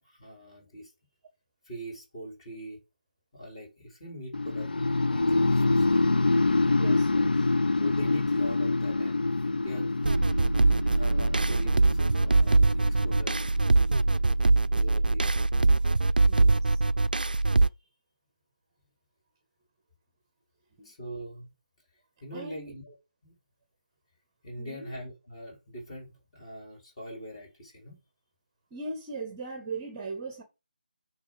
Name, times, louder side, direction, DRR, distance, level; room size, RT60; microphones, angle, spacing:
voice 1, 0.1-0.9 1.7-2.8 3.3-4.7 5.1-6.0 7.8-10.0 10.9-13.4 14.7-15.3 20.8-21.5 22.2-22.9 23.2-23.3 24.4-28.0, equal, 30° left, 4.3 m, -42 dB
sound 1, 4.3-14.3, left 3 dB, 70° left, 0.4 m, -26 dB
voice 2, 6.8-7.5 16.2-16.8 20.8-20.9 22.3-22.7 24.6-24.9 28.7-30.4, right 3 dB, 20° right, 0.9 m, -39 dB
sound 2, 10.0-17.7, right 3 dB, 65° right, 0.4 m, -23 dB
9.5 x 3.4 x 4.8 m
figure-of-eight pair, 155°, 5 cm